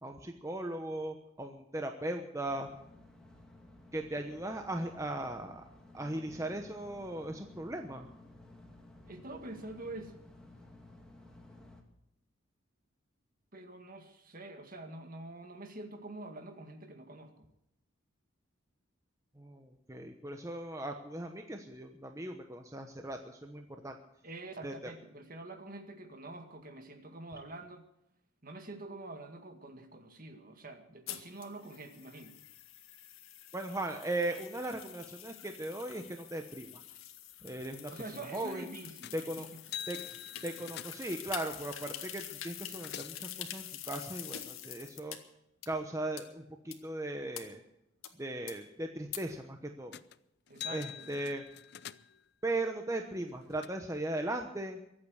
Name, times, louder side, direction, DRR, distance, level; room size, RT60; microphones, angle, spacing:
voice 1, 0.0-2.7 3.9-5.6 5.9-8.1 19.4-24.0 24.6-24.9 33.5-36.8 37.4-37.9 38.3-38.6 39.1-39.5 39.9-40.0 40.4-45.2 45.7-47.6 48.2-50.0 50.7-51.4 52.4-54.8, right 1 dB, 15° right, 4 dB, 1.0 m, -38 dB
sound 1, 2.5-11.8, left 1 dB, 5° left, 2.5 m, -55 dB
voice 2, 9.1-10.2 13.5-17.5 24.2-27.8 28.4-32.3 37.9-39.4 50.5-51.3, right 2 dB, 45° right, 6 dB, 2.0 m, -46 dB
sound 2, 31.1-45.2 45.6-45.7 46.2-46.3 46.7-46.8 47.3-47.4 48.0-48.1 48.5-48.6 49.1-49.2, left 11 dB, 85° left, 1.8 m, -46 dB
sound 3, 39.0-39.3 39.6-41.2 42.2-42.3 42.5-43.3 49.9-50.2 50.5-52.3 53.0-53.7, left 10 dB, 50° left, 0.5 m, -45 dB
23.0 x 8.9 x 6.4 m, 0.83 s
head